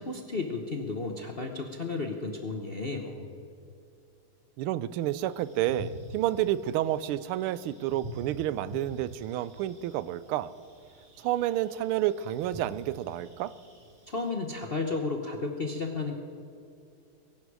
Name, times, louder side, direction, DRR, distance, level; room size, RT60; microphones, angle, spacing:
voice 1, 0.0-3.3 14.1-16.1, left 3 dB, 45° left, 3 dB, 0.8 m, -33 dB
voice 2, 4.6-10.5 11.2-13.5, right 13 dB, 85° right, 17 dB, 1.5 m, -30 dB
sound 1, 5.0-14.3, right 1 dB, 35° right, 3.2 m, -47 dB
22.0 x 11.5 x 4.8 m, 2.6 s
omnidirectional pair, 2.3 m